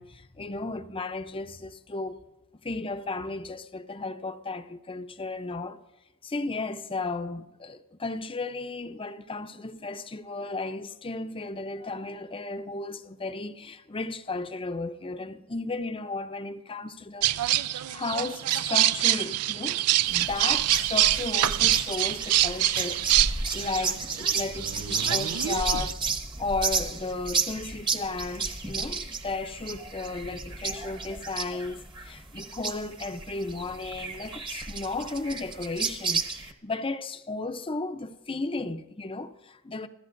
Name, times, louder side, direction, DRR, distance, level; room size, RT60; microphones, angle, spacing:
voice 1, 0.0-2.2 2.6-5.8 6.2-17.3 17.6-19.8 20.1-26.0 26.4-39.9, left 3 dB, 25° left, 0.6 m, -34 dB
sound 1, 17.2-25.9, right 14 dB, 85° right, 0.4 m, -26 dB
sound 2, 20.1-36.5, right 4 dB, 20° right, 1.1 m, -32 dB
27.5 x 15.0 x 2.6 m
head